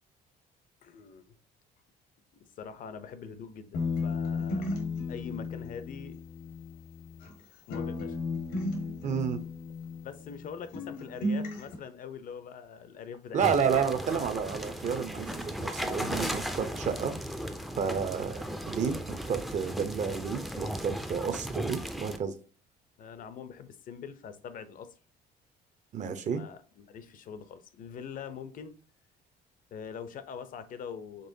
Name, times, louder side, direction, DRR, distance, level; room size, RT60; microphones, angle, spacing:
voice 1, 0.8-1.3 2.4-4.8 5.1-6.2 7.7-8.2 10.0-13.8 23.0-25.0 26.3-28.8 29.7-31.3, left 7 dB, 55° left, 0.6 m, -43 dB
sound 1, 3.7-7.4 7.7-10.5 10.7-11.7, left 3 dB, 85° left, 1.5 m, -34 dB
voice 2, 9.0-9.4 13.3-17.1 17.8-22.3 25.9-26.4, right 7 dB, 45° right, 0.7 m, -31 dB
sound 2, 13.4-22.2, equal, ahead, 0.5 m, -36 dB
5.4 x 3.4 x 2.7 m
cardioid pair, 110°, 17 cm